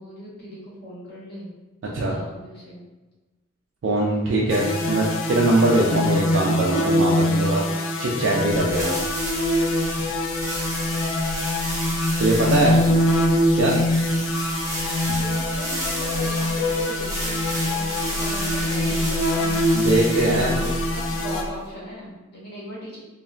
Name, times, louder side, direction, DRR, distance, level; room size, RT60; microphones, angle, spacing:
voice 1, 0.0-1.5 1.8-2.8 12.1-13.0 15.1-19.5 20.4-23.0, equal, 60° left, -5 dB, 1.0 m, -38 dB
voice 2, 3.8-7.6 8.0-9.0 12.2-12.8 13.5-13.8 19.7-20.6, right 2 dB, 70° right, -3 dB, 0.4 m, -21 dB
sound 1, 4.5-21.4, left 1 dB, 85° left, 0.4 m, -24 dB
sound 2, 8.5-21.6, right 1 dB, 15° right, 0.6 m, -32 dB
3.1 x 2.2 x 2.3 m, 1.2 s
head